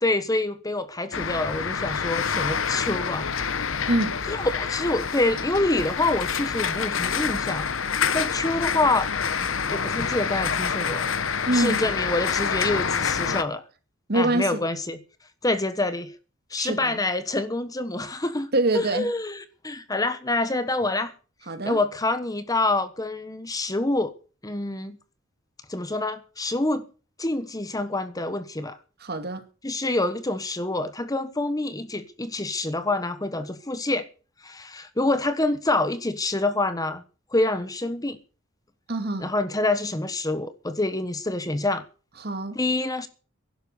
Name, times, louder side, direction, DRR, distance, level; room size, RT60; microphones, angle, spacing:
voice 1, 0.0-3.3 4.3-7.7 8.1-9.1 9.7-11.0 11.5-13.6 14.1-15.0 15.4-16.1 16.5-19.4 19.6-21.1 21.6-24.1 24.4-25.0 25.7-26.9 27.2-28.8 29.6-34.0 34.4-37.0 37.3-38.2 39.2-41.8 42.5-43.1, left 2 dB, 20° left, 1.2 m, -26 dB
sound 1, 1.1-13.4, left 6 dB, 80° left, 1.1 m, -27 dB
voice 2, 3.9-4.2 11.5-11.9 14.1-14.7 16.6-17.0 18.5-19.1 21.5-21.8 29.0-29.4 38.9-39.3 42.2-42.6, right 2 dB, 55° right, 2.2 m, -25 dB
16.5 x 11.5 x 6.7 m
head